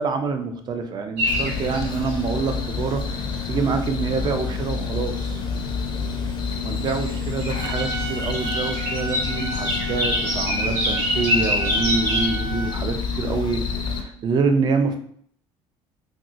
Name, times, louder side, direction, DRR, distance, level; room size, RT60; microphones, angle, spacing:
voice 1, 0.0-5.4 6.6-13.6 13.9-15.0, right 4 dB, 40° right, 6 dB, 0.4 m, -26 dB
sound 1, 1.2-12.3, left 1 dB, 85° right, 1.3 m, -28 dB
sound 2, 1.3-14.0, left 6 dB, 40° left, 0.4 m, -29 dB
Trumpet, 7.5-12.8, right 3 dB, 65° right, 0.9 m, -33 dB
3.0 x 2.7 x 2.4 m, 0.62 s
cardioid pair, 120°, 11 cm